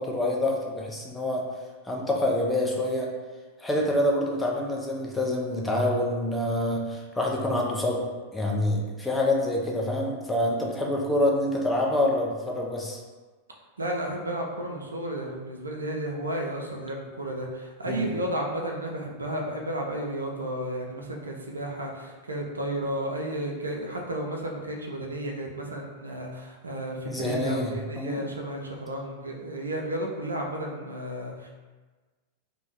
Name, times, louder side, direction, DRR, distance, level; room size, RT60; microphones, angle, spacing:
voice 1, 0.0-1.5 1.8-3.1 3.6-8.0 8.3-13.0 17.9-18.1 27.1-27.7 28.0-28.3, left 1 dB, 10° left, -2 dB, 0.5 m, -26 dB
voice 2, 13.8-31.5, right 1 dB, 75° right, 0 dB, 0.4 m, -33 dB
2.6 x 2.2 x 3.2 m, 1.3 s
figure-of-eight pair, 90°, 0 cm